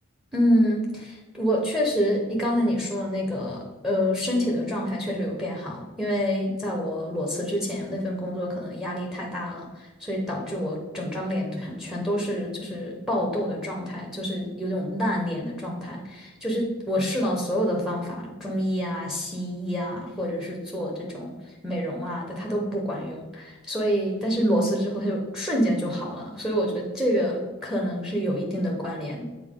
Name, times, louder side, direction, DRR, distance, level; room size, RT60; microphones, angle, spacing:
voice 1, 0.3-21.3 21.6-29.2, equal, ahead, -1 dB, 0.9 m, -27 dB
7.0 x 4.3 x 3.7 m, 1.2 s
head